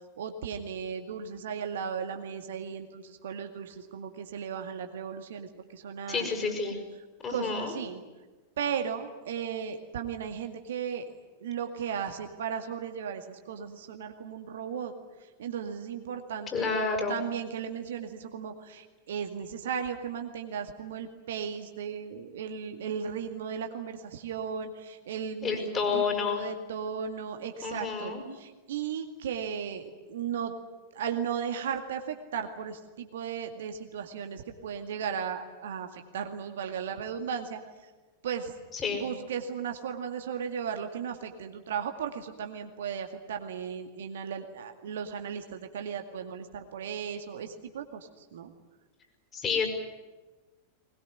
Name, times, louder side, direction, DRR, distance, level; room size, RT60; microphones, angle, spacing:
voice 1, 0.2-6.5 7.3-8.0 8.6-11.1 11.4-14.9 15.4-16.8 17.1-30.5 30.9-37.6 38.2-38.5 39.0-48.5, right 7 dB, 60° right, 6 dB, 2.1 m, -36 dB
voice 2, 6.1-6.8 7.2-7.7 16.5-17.2 25.4-26.4 27.6-28.2 38.7-39.1 49.3-49.7, left 5 dB, 25° left, 3 dB, 6.1 m, -29 dB
21.5 x 21.5 x 10.0 m, 1.2 s
figure-of-eight pair, 90°, 0 cm